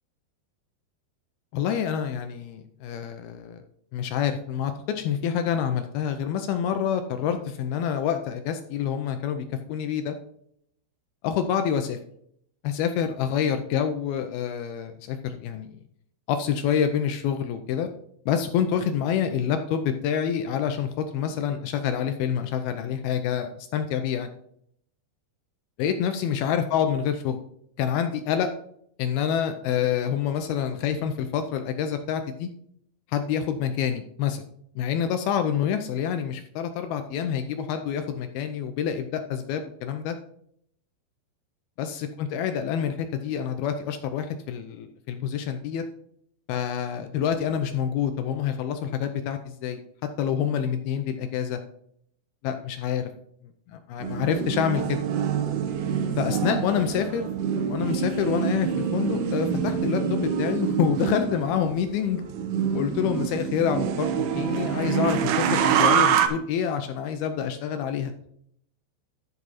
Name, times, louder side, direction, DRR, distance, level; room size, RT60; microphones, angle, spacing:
voice 1, 1.5-3.6 3.9-10.2 11.2-12.0 12.6-15.7 16.3-17.9 18.3-24.3 25.8-27.4 27.8-28.5 29.0-32.5 33.1-34.4 34.8-40.2 41.8-45.9 46.5-49.8 50.2-51.6 52.4-53.1 53.7-55.0 56.2-57.3 57.7-62.3 62.7-68.1, left 8 dB, 80° left, 7 dB, 2.2 m, -27 dB
sound 1, 54.0-66.3, right 8 dB, 70° right, 2.5 m, -26 dB
12.0 x 6.0 x 4.1 m, 0.69 s
omnidirectional pair, 5.1 m